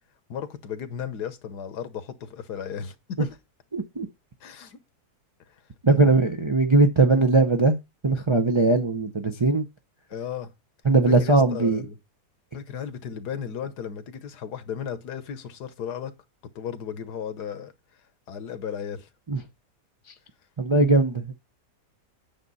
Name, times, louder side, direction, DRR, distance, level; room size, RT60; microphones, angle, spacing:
voice 1, 0.3-3.3 4.4-4.8 5.5-5.6 5.9-6.2 10.1-10.5 11.0-12.0 12.5-16.1 16.5-17.7 18.3-19.1, left 8 dB, 80° left, 1.6 m, -35 dB
voice 2, 3.7-4.1 5.8-7.8 8.0-9.6 10.8-11.8 19.3-19.4 20.6-21.3, right 3 dB, 50° right, 0.3 m, -20 dB
9.0 x 6.7 x 4.1 m
omnidirectional pair, 1.7 m